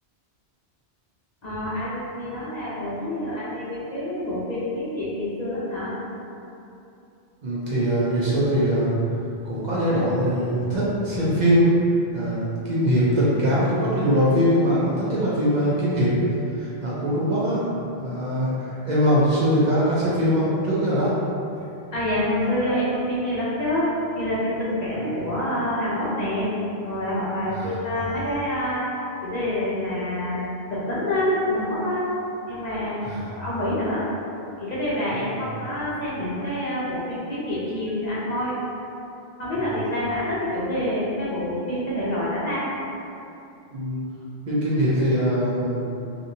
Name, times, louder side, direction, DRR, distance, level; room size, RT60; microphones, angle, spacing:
voice 1, 1.4-5.9 21.9-26.5 26.8-28.9 29.2-30.4 30.7-32.1 32.4-33.0 33.3-34.1 34.6-38.6 39.4-42.6, left 1 dB, 50° left, -9 dB, 0.6 m, -27 dB
voice 2, 7.4-9.0 9.4-11.7 12.1-16.1 16.5-21.1 27.5-27.8 33.0-33.3 35.1-35.5 39.6-39.8 43.7-44.0 44.4-46.0, equal, 50° right, -9 dB, 0.7 m, -22 dB
2.9 x 2.5 x 2.6 m, 2.7 s
omnidirectional pair, 1.1 m